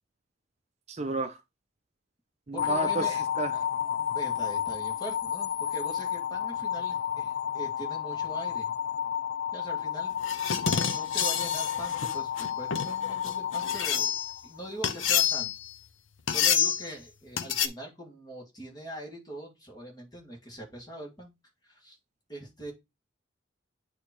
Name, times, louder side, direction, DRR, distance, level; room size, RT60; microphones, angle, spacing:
voice 1, 0.9-1.4 2.5-3.6, right 3 dB, 35° right, 0.5 m, -32 dB
voice 2, 2.5-3.2 3.9-8.7 9.5-10.1 10.6-14.2 14.4-15.5 16.3-21.3 21.7-22.0 22.3-22.7, right 1 dB, 20° left, 2.1 m, -42 dB
sound 1, 2.6-14.7, left 9 dB, 55° left, 0.4 m, -31 dB
sound 2, 10.2-14.4 14.8-15.7 16.3-16.9 17.4-17.7, left 8 dB, 85° left, 0.7 m, -28 dB
8.5 x 3.1 x 4.4 m
head